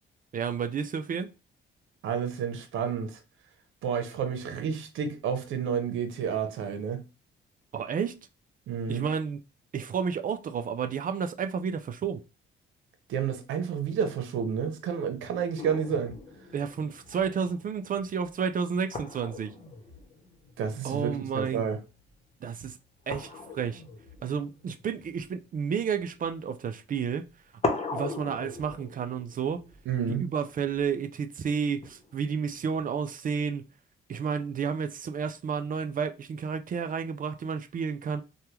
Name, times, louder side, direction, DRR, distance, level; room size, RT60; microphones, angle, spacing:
voice 1, 0.3-1.3 7.7-8.2 8.9-9.4 9.7-12.2 16.5-19.5 20.8-21.6 22.4-22.8 23.1-23.8 24.2-27.2 27.9-29.6 30.2-33.7 34.1-38.2, right 6 dB, 45° right, 0.4 m, -31 dB
voice 2, 2.0-3.2 3.8-7.0 8.7-9.1 13.1-16.1 20.6-21.8 29.9-30.3, right 7 dB, 85° right, 0.8 m, -30 dB
sound 1, 15.6-21.5 21.7-22.1 23.0-26.3 27.1-27.2 27.6-30.8 31.8-32.8, left 3 dB, 30° left, 0.9 m, -39 dB
3.4 x 2.3 x 2.9 m
cardioid pair, 90°, 20 cm